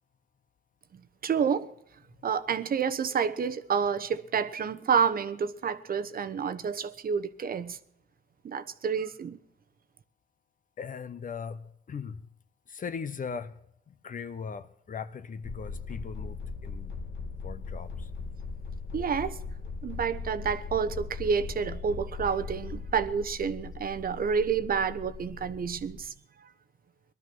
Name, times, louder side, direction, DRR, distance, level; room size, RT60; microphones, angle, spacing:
voice 1, 1.2-1.7 2.2-7.8 8.4-9.4 18.9-19.4 19.8-26.1, right 6 dB, 45° right, 1.0 m, -29 dB
voice 2, 10.8-12.2 12.7-13.5 13.9-16.9 17.4-18.1, left 6 dB, 45° left, 1.0 m, -39 dB
sound 1, 15.4-26.0, left 4 dB, 65° left, 1.7 m, -39 dB
19.0 x 12.5 x 6.2 m
cardioid pair, 90°, 20 cm